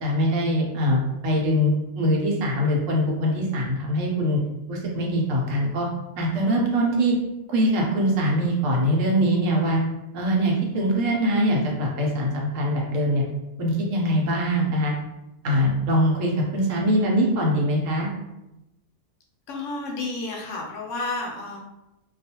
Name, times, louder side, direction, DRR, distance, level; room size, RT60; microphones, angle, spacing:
voice 1, 0.0-4.4 4.7-5.9 6.2-7.2 7.5-9.8 10.1-13.2 13.6-14.9 15.4-18.1, equal, 75° right, -1 dB, 1.0 m, -23 dB
voice 2, 19.5-21.6, left 2 dB, 75° left, 0 dB, 0.9 m, -31 dB
2.3 x 2.3 x 2.7 m, 0.96 s
omnidirectional pair, 1.3 m